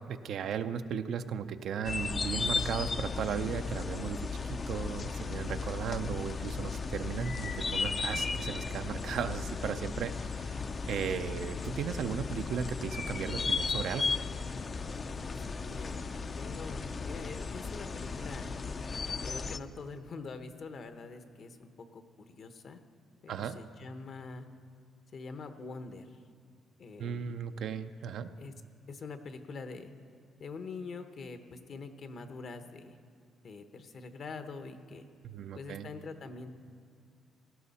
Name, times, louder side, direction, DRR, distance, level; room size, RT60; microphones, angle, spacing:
voice 1, 0.1-10.6 10.9-14.2 23.3-23.6 27.0-28.3 35.2-35.9, right 7 dB, 70° right, 9 dB, 0.5 m, -36 dB
sound 1, 1.8-19.6, left 4 dB, 40° left, 0.5 m, -35 dB
voice 2, 15.4-16.1 16.4-18.5 19.2-22.0 22.3-22.8 23.2-24.5 25.1-26.2 26.8-27.4 28.4-28.5 28.9-29.9 30.4-33.0 33.4-35.0 35.5-36.5, left 4 dB, 55° left, 8 dB, 1.0 m, -44 dB
17.5 x 12.5 x 4.2 m, 2.3 s
cardioid pair, 90°, 0 cm